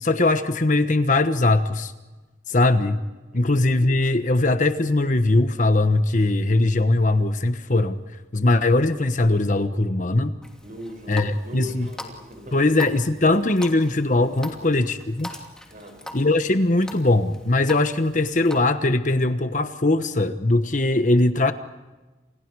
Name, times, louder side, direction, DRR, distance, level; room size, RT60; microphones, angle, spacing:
voice 1, 0.0-1.9 2.5-3.0 3.3-8.0 8.3-10.3 11.1-11.9 12.5-15.3 16.1-21.5, left 2 dB, 45° left, 9 dB, 1.2 m, -20 dB
Water tap faucet, 10.4-18.6, left 1 dB, 5° left, 2.7 m, -42 dB
voice 2, 10.6-12.7 14.4-14.6 15.7-16.1, left 1 dB, 45° right, 5 dB, 6.5 m, -40 dB
29.5 x 28.5 x 4.8 m, 1.2 s
head